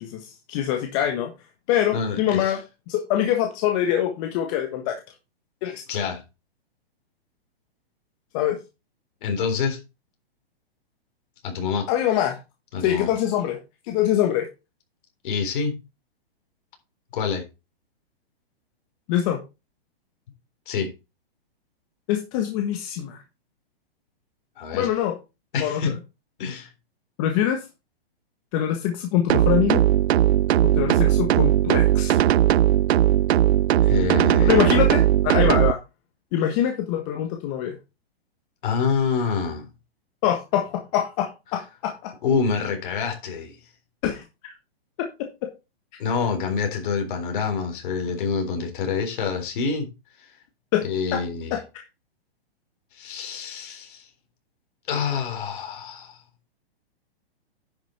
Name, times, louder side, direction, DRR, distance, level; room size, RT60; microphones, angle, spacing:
voice 1, 0.0-1.3 1.7-2.6 2.9-5.0 5.6-5.8 8.3-8.6 11.9-12.4 12.8-13.6 13.9-14.5 19.1-19.4 22.1-23.2 24.7-25.2 25.6-25.9 27.2-27.6 28.5-29.8 30.6-32.2 34.4-35.8 36.3-37.8 40.2-42.1 44.0-44.5 45.4-45.5 50.7-50.8 51.1-51.2 51.5-51.6, left 11 dB, 30° left, 1.5 m, -24 dB
voice 2, 1.9-2.6 5.9-6.2 9.2-9.8 11.4-11.9 12.7-13.1 15.2-15.8 17.1-17.4 20.7-20.9 24.6-24.9 25.5-26.0 26.4-26.7 33.8-34.6 38.6-39.7 42.2-43.6 46.0-49.9 50.8-51.6 52.9-54.1 54.9-56.2, left 5 dB, 55° left, 3.9 m, -26 dB
sound 1, 29.3-35.7, right 12 dB, 85° right, 0.5 m, -18 dB
10.5 x 6.2 x 4.4 m
hypercardioid pair, 150°, 31 cm